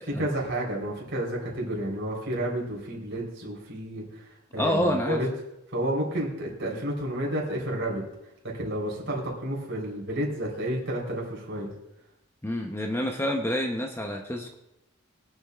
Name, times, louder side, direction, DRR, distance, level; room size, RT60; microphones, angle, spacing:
voice 1, 0.2-5.3 5.7-8.0 8.5-11.7, right 1 dB, 55° right, -3 dB, 3.7 m, -31 dB
voice 2, 4.6-5.2 12.4-14.5, left 1 dB, 10° left, 3 dB, 0.7 m, -28 dB
23.0 x 7.9 x 2.4 m, 0.89 s
head